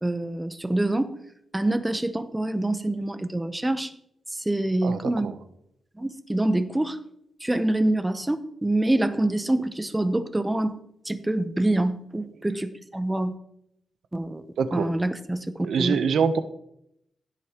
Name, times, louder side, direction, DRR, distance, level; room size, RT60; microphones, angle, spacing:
voice 1, 0.0-1.1 1.5-3.9 4.3-5.3 6.0-7.0 7.4-10.8 11.0-13.3 14.1-14.4 14.7-15.9, right 1 dB, 10° right, 11 dB, 0.7 m, -26 dB
voice 2, 4.8-5.3 14.6-14.9 15.6-16.4, right 6 dB, 80° right, 10 dB, 0.8 m, -24 dB
16.0 x 8.2 x 2.9 m, 0.76 s
wide cardioid pair, 120°, 0 cm